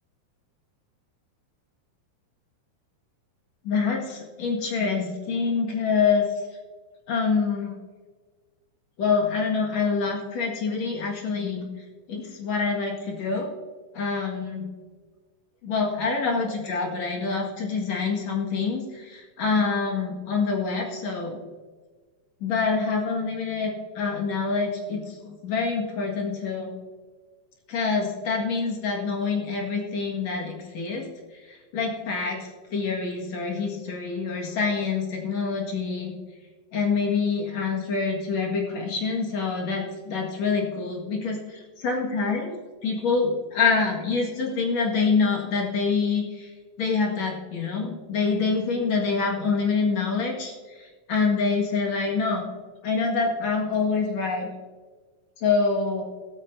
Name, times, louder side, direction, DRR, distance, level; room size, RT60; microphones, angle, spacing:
voice 1, 3.6-6.3 7.1-7.8 9.0-11.7 12.1-13.5 13.9-14.7 15.6-21.4 22.4-26.7 27.7-31.1 31.5-36.1 36.7-42.5 42.8-46.5 46.8-50.5 50.8-52.4 52.8-54.5 55.4-56.0, left 4 dB, 55° left, -1 dB, 2.8 m, -26 dB
16.0 x 13.5 x 2.7 m, 1.4 s
omnidirectional pair, 4.1 m